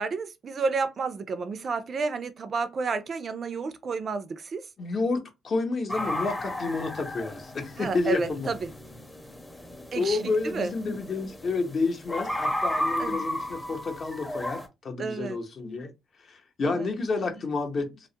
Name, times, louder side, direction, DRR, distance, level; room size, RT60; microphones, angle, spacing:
voice 1, 0.0-4.6 7.8-8.7 9.9-10.7 13.0-13.2 15.0-15.4 16.6-16.9, right 4 dB, 45° right, 0.3 m, -31 dB
voice 2, 4.8-8.5 9.9-15.9 16.3-18.1, left 3 dB, 50° left, 0.7 m, -30 dB
coyote barks and howls, 5.9-14.7, left 1 dB, 10° left, 0.6 m, -34 dB
2.2 x 2.0 x 2.7 m
cardioid pair, 90°, 0 cm